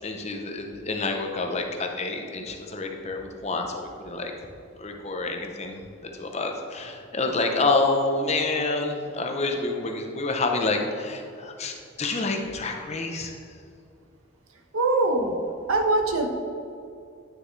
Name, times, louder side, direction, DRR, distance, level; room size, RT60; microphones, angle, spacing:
voice 1, 0.0-4.3 4.8-13.3, left 3 dB, 30° left, 3 dB, 0.7 m, -28 dB
voice 2, 14.7-16.3, right 2 dB, 85° right, 3 dB, 1.0 m, -23 dB
9.7 x 6.3 x 3.2 m, 2.4 s
head